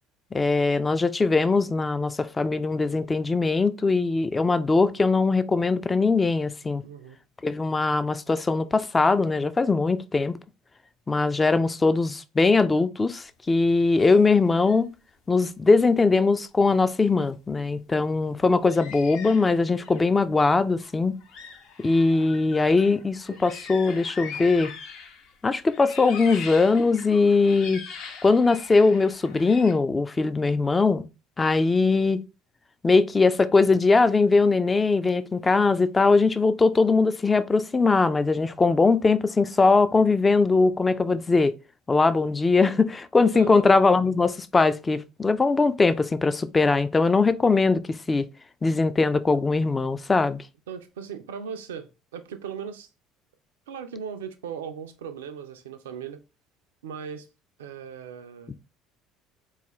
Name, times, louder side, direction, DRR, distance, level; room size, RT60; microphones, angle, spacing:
voice 1, 0.3-6.8 7.4-10.4 11.1-14.9 15.3-21.2 21.8-24.7 25.4-27.8 28.2-31.0 31.4-32.2 32.8-41.5 41.9-47.8 48.1-48.3 48.6-50.4, left 3 dB, 20° left, 0.3 m, -21 dB
voice 2, 6.8-7.2 43.3-43.7 50.7-52.9 53.7-56.2 56.8-57.3 57.6-58.5, right 7 dB, 75° right, 0.3 m, -38 dB
sound 1, 13.9-14.2 14.6-14.8 15.7-15.8 18.6-20.1 20.8-20.9 21.2-25.3 25.6-29.7, left 6 dB, 55° left, 0.6 m, -41 dB
4.1 x 2.4 x 2.9 m
figure-of-eight pair, 60°, 0 cm